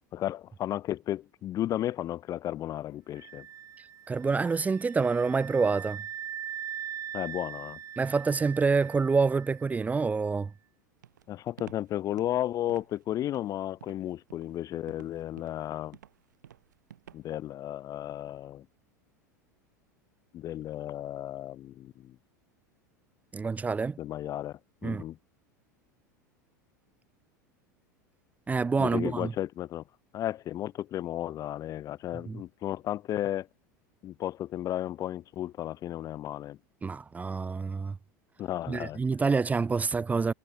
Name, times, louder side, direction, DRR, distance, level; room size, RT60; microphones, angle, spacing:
voice 1, 0.1-3.5 7.1-7.8 11.3-16.0 17.1-18.7 20.3-22.2 24.0-25.2 28.8-29.8 30.1-33.5 34.0-36.6 38.4-39.0, left 12 dB, 35° left, 0.6 m, -34 dB
sound 1, 3.1-9.9, right 9 dB, 30° right, 1.7 m, -41 dB
voice 2, 4.1-6.0 8.0-10.5 23.3-24.0 24.8-25.0 28.5-29.3 32.3-32.4 36.8-38.0 38.7-40.3, right 4 dB, 15° right, 0.6 m, -27 dB
Walk footsteps, 11.0-17.5, right 10 dB, 75° right, 2.3 m, -52 dB
figure-of-eight pair, 80°, 10 cm